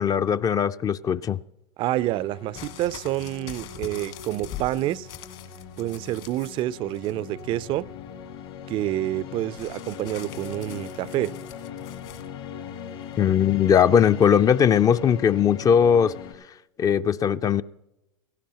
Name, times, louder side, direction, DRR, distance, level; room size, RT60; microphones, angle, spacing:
voice 1, 0.0-1.4 13.2-16.1 16.8-17.6, left 8 dB, 25° left, 0.4 m, -19 dB
voice 2, 1.8-5.1 5.8-7.9 8.7-11.4, right 15 dB, 40° right, 0.4 m, -28 dB
sound 1, 2.0-16.3, left 7 dB, 75° left, 4.3 m, -40 dB
sound 2, 2.5-6.6 6.9-7.5 9.6-12.3 13.1-13.2, left 9 dB, 55° left, 1.6 m, -43 dB
17.5 x 16.0 x 2.9 m
hypercardioid pair, 100°, 13 cm